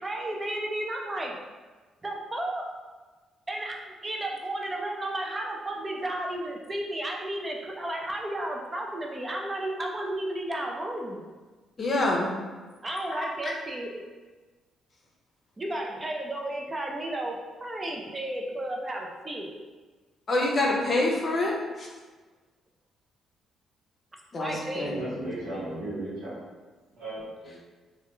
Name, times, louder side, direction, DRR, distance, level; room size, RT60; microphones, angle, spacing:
voice 1, 0.0-1.4 2.0-2.7 3.5-11.2 12.8-14.0 15.6-19.6 24.4-24.9, right 1 dB, 25° right, 0 dB, 0.4 m, -33 dB
voice 2, 11.8-12.3 13.1-13.5 20.3-21.9 24.3-25.0, left 2 dB, 40° left, -1 dB, 0.6 m, -26 dB
voice 3, 24.8-26.4 27.0-27.6, right 1 dB, 85° right, -13 dB, 0.8 m, -35 dB
2.3 x 2.2 x 2.9 m, 1.3 s
cardioid pair, 90°, 0 cm